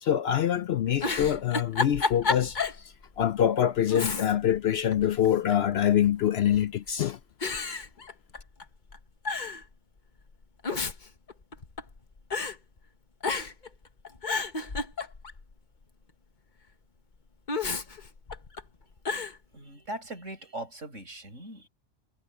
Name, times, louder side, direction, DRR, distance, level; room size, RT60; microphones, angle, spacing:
voice 1, 0.0-7.2, left 10 dB, 60° left, 0.7 m, -25 dB
Giggle, 0.8-2.8 3.2-3.3 3.9-4.6 4.9-5.7 6.5-6.9 7.4-8.6 8.9-9.0 9.2-9.6 10.4-12.0 12.3-12.6 13.2-13.7 14.0-15.4 17.5-18.6 19.0-19.4, left 4 dB, 40° left, 1.3 m, -31 dB
voice 2, 19.5-21.7, right 1 dB, 70° right, 6.8 m, -40 dB
omnidirectional pair, 1.3 m